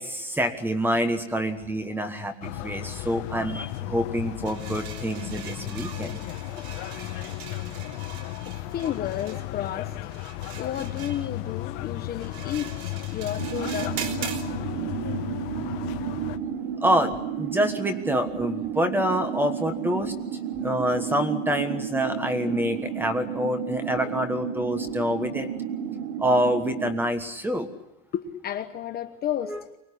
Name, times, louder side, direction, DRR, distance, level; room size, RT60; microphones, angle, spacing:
voice 1, 0.0-6.2 6.9-7.3 16.8-20.1 20.6-25.5 26.2-27.7 29.4-29.6, equal, 5° right, 8 dB, 1.4 m, -26 dB
sound 1, 2.4-16.4, left 15 dB, 50° left, 1.5 m, -35 dB
sound 2, 4.5-14.5, right 8 dB, 50° right, 3.5 m, -41 dB
voice 2, 8.4-10.2 10.6-14.2 28.1-29.8, left 10 dB, 25° left, 6 dB, 1.1 m, -32 dB
sound 3, 13.4-27.0, right 8 dB, 65° right, 2.1 m, -32 dB
24.0 x 20.0 x 10.0 m, 0.92 s
supercardioid pair, 170°, 38 cm